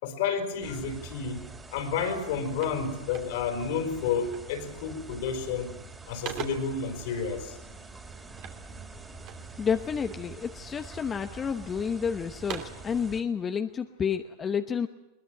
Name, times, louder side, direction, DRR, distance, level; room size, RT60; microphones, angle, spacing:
voice 1, 0.0-5.8 6.1-7.6, left 6 dB, 65° left, 6 dB, 4.5 m, -31 dB
sound 1, 0.6-13.2, right 3 dB, 15° right, 3.2 m, -46 dB
sound 2, 1.7-1.8 2.1-3.7 4.3-4.6 5.0-5.5 5.8-6.8 8.3-9.5 10.1-10.7 11.2-11.9 12.2-12.9, right 10 dB, 50° right, 2.9 m, -43 dB
voice 2, 9.6-14.9, left 7 dB, 25° left, 7 dB, 1.0 m, -30 dB
21.5 x 20.5 x 9.1 m, 0.96 s
hypercardioid pair, 95°, 0 cm